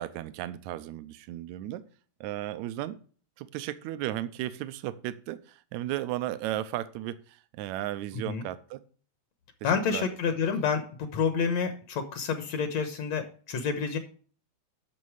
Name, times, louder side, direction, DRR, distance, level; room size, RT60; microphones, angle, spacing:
voice 1, 0.0-1.8 2.2-3.0 3.4-8.8 9.6-10.1, right 14 dB, 80° right, 13 dB, 2.0 m, -35 dB
voice 2, 9.6-14.0, left 6 dB, 70° left, 7 dB, 2.2 m, -29 dB
11.0 x 6.5 x 4.8 m, 0.42 s
omnidirectional pair, 3.3 m